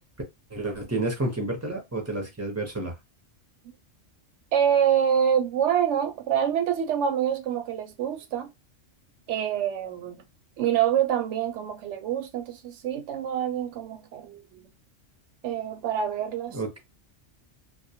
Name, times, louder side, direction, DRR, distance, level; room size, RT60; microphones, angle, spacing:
voice 1, 0.5-2.9 16.5-16.8, right 2 dB, 20° right, 0.5 m, -30 dB
voice 2, 4.5-8.5 9.3-10.2 10.6-14.6 15.4-16.6, right 9 dB, 75° right, 0.8 m, -26 dB
2.2 x 2.1 x 2.7 m
omnidirectional pair, 1.3 m